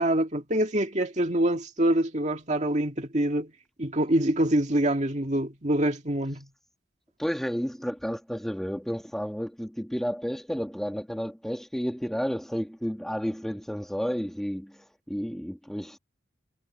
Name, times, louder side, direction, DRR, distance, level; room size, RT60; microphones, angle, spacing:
voice 1, 0.0-3.5 3.8-6.5, right 1 dB, 40° right, 2.1 m, -25 dB
voice 2, 7.2-16.0, equal, ahead, 1.5 m, -31 dB
head